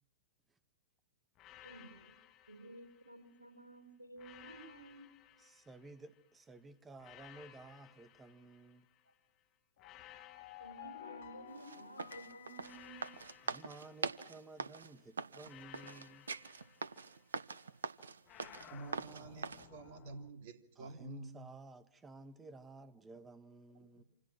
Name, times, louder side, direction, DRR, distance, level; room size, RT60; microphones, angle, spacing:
sound 1, 1.4-3.5 4.2-6.3 7.0-9.2 9.8-11.9 12.6-14.8 15.4-17.6 18.3-20.3, left 12 dB, 30° left, 1.8 m, -59 dB
voice 1, 1.6-2.1 2.5-5.1 10.6-13.1, right 2 dB, 90° right, 4.2 m, -53 dB
voice 2, 5.4-8.9 13.4-16.3 20.8-24.0, right 3 dB, 15° right, 1.8 m, -54 dB
sound 2, 9.8-13.7, left 13 dB, 50° left, 1.7 m, -53 dB
sound 3, 11.6-19.7, right 5 dB, 70° right, 1.2 m, -43 dB
voice 3, 18.7-21.5 23.9-24.0, right 3 dB, 50° right, 3.0 m, -49 dB
28.5 x 27.0 x 6.1 m
figure-of-eight pair, 105°, 0 cm